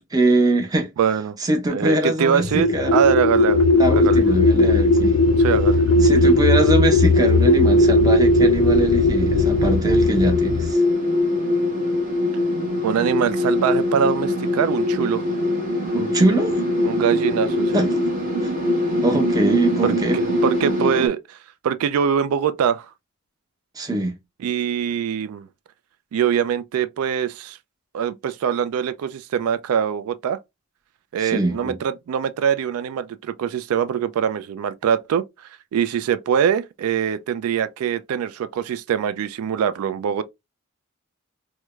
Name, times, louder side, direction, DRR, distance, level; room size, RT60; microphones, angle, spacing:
voice 1, 0.1-0.9 1.4-2.9 3.8-5.2 6.0-10.8 15.9-16.6 17.7-18.0 18.4-18.5 19.0-20.2 23.8-24.2 31.2-31.8, right 1 dB, 15° right, 0.6 m, -22 dB
voice 2, 1.0-1.4 1.7-3.6 3.9-4.2 5.4-5.8 12.8-15.2 16.8-17.9 19.8-21.4 21.6-22.9 24.4-25.5 26.1-27.6 27.9-30.4 31.1-40.2, right 8 dB, 80° right, 0.3 m, -23 dB
sound 1, 2.4-10.7, left 2 dB, 55° left, 0.3 m, -17 dB
sound 2, 3.3-21.1, left 1 dB, 40° right, 1.2 m, -24 dB
4.5 x 2.1 x 2.3 m
head